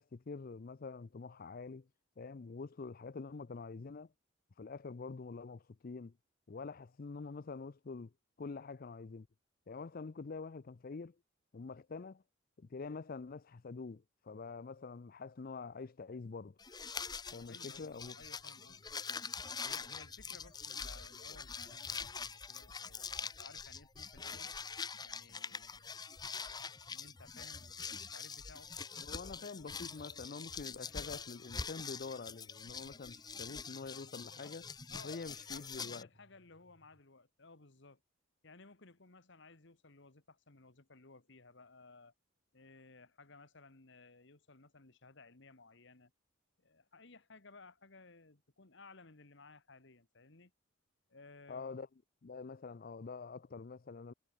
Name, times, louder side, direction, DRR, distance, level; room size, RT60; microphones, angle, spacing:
voice 1, 0.0-1.9 2.2-4.1 4.6-6.2 6.5-8.1 8.4-9.3 9.7-11.2 11.5-12.2 12.6-16.6 17.3-18.2 29.0-34.7 35.0-36.1 51.5-51.9 52.2-54.1, left 4 dB, 45° left, 0.5 m, -46 dB
sound 1, 16.6-36.0, left 5 dB, 20° left, 0.8 m, -44 dB
sound 2, 17.4-37.0, equal, 45° right, 5.4 m, -70 dB
voice 2, 17.5-19.0 19.6-24.5 25.0-25.9 26.3-28.7 34.9-38.0 38.4-42.1 42.5-46.1 46.6-50.5 51.1-51.8, left 3 dB, 65° left, 1.8 m, -58 dB
head